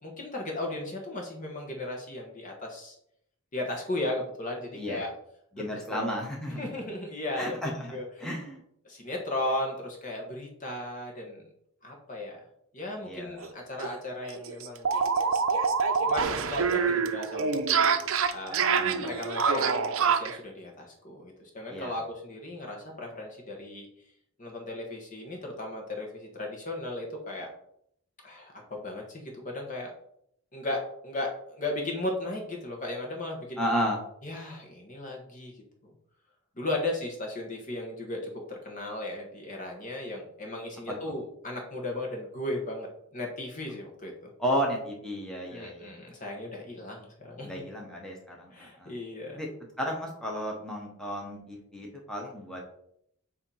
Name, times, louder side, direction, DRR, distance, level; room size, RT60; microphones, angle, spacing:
voice 1, 0.0-3.0 3.5-5.1 5.6-5.7 5.9-6.2 6.6-8.3 8.8-11.4 11.8-12.4 12.7-15.0 16.0-17.5 18.3-23.9 24.4-27.5 28.2-29.9 30.5-33.6 34.2-35.6 36.6-38.2 38.5-44.3 45.5-47.6 48.5-49.4, left 1 dB, 35° left, 0 dB, 1.2 m, -36 dB
voice 2, 4.7-5.1 5.5-6.7 7.4-8.6 13.0-13.4 18.7-19.2 21.7-22.0 33.6-34.0 41.1-41.2 44.4-45.9 47.4-48.9 49.4-49.5 49.8-52.6, equal, 5° left, -2 dB, 1.0 m, -33 dB
sound 1, 13.4-13.5 13.8-13.9 14.2-20.4, right 5 dB, 65° right, 0.6 m, -26 dB
7.8 x 2.8 x 5.6 m, 0.72 s
head